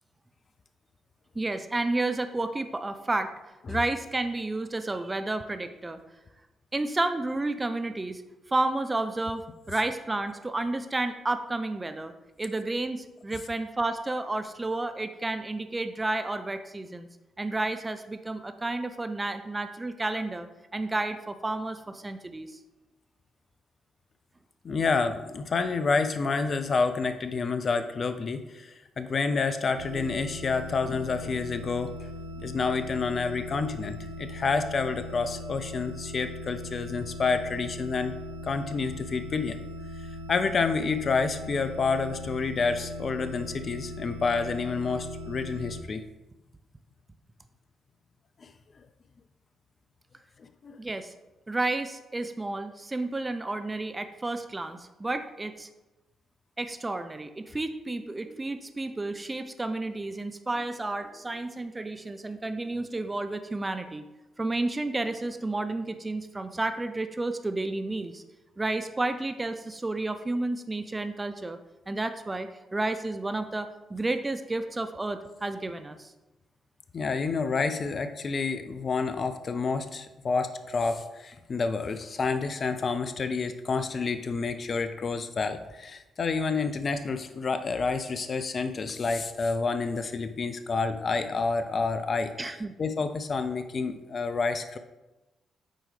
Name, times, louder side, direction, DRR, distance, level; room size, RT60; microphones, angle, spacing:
voice 1, 1.4-3.3 3.7-6.0 6.7-8.2 8.5-12.1 12.4-17.1 17.4-20.5 20.7-22.6 50.8-51.1 51.5-55.7 56.6-64.0 64.4-68.2 68.6-71.6 71.9-76.1 92.4-92.7, right 2 dB, 25° right, 9 dB, 0.4 m, -31 dB
voice 2, 24.6-32.0 32.4-38.1 38.4-39.6 40.3-46.0 48.4-48.5 50.6-50.8 76.9-92.3 92.8-94.8, left 4 dB, 45° left, 9 dB, 0.4 m, -29 dB
sound 1, 29.8-45.8, left 1 dB, 85° right, 0.4 m, -40 dB
7.6 x 4.6 x 3.3 m, 1.1 s
hypercardioid pair, 40°, 0 cm